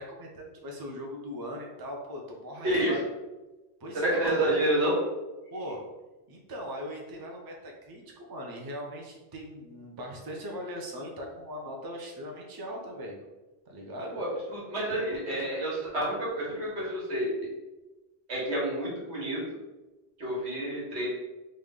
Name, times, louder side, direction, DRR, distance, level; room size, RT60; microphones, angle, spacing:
voice 1, 0.0-3.1 3.8-4.5 5.5-5.8 6.3-13.2 13.7-14.2, equal, 30° right, 0 dB, 0.5 m, -39 dB
voice 2, 3.9-5.0 14.1-17.3 18.3-19.4 20.2-21.1, right 1 dB, 90° right, -5 dB, 1.5 m, -29 dB
3.3 x 2.6 x 3.6 m, 1.1 s
omnidirectional pair, 1.1 m